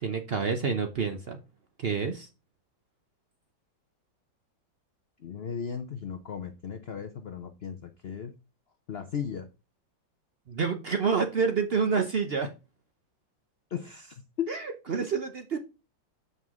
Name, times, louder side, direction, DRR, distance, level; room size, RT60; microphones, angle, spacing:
voice 1, 0.0-1.4 1.8-2.3 10.5-12.5 14.5-15.6, right 5 dB, 65° right, 0.5 m, -28 dB
voice 2, 5.2-8.4 8.9-9.5 13.7-14.5, left 7 dB, 80° left, 0.5 m, -36 dB
7.6 x 5.6 x 3.6 m
omnidirectional pair, 2.1 m